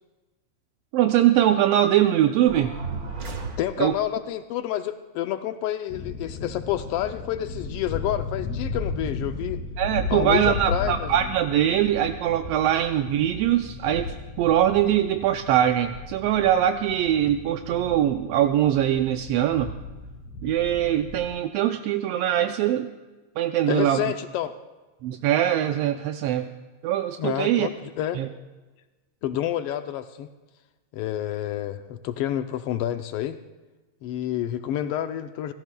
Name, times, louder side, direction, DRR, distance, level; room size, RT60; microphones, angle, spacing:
voice 1, 0.9-2.8 3.8-3.9 9.8-19.7 20.4-22.9 23.4-24.0 25.0-26.5 26.8-27.7 28.2-28.3, right 11 dB, 80° right, 7 dB, 1.5 m, -22 dB
sound 1, 2.5-4.2, right 4 dB, 45° right, 1.3 m, -34 dB
voice 2, 3.6-9.6 10.1-11.2 23.7-24.5 27.2-28.2 29.2-30.3 30.9-33.4 34.0-35.5, left 12 dB, 90° left, 9 dB, 1.3 m, -29 dB
sound 2, 5.9-21.3, left 3 dB, 75° left, 3.8 m, -35 dB
29.0 x 17.0 x 2.3 m, 1.2 s
omnidirectional pair, 3.3 m